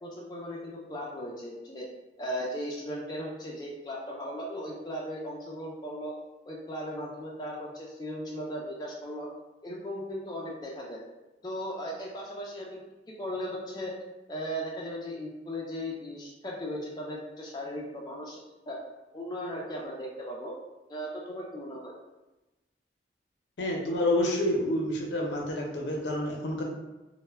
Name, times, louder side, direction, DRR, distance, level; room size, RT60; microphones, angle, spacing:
voice 1, 0.0-1.9 2.2-6.1 6.5-9.3 9.6-11.0 11.4-12.8 13.2-13.9 14.3-18.8 19.1-20.5 20.9-22.0, equal, 25° left, -3 dB, 0.3 m, -37 dB
voice 2, 23.6-26.6, left 1 dB, 80° left, 0 dB, 0.5 m, -28 dB
2.1 x 2.1 x 3.2 m, 1.0 s
head